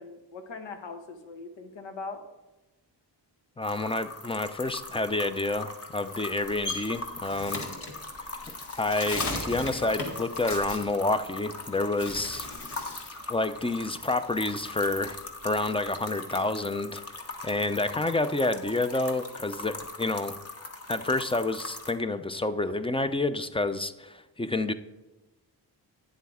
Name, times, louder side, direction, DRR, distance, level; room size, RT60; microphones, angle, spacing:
voice 1, 0.0-2.2, left 4 dB, 75° left, 6 dB, 1.2 m, -41 dB
sound 1, 3.6-21.9, left 2 dB, 35° left, 1.2 m, -41 dB
voice 2, 3.6-7.7 8.8-12.5 13.3-20.3 20.9-24.7, left 2 dB, 15° left, 11 dB, 0.5 m, -29 dB
Bird, 6.1-11.6 11.9-13.2 13.5-15.3, left 2 dB, 60° left, 1.6 m, -37 dB
9.5 x 7.3 x 3.6 m, 1.1 s
cardioid pair, 65°, 44 cm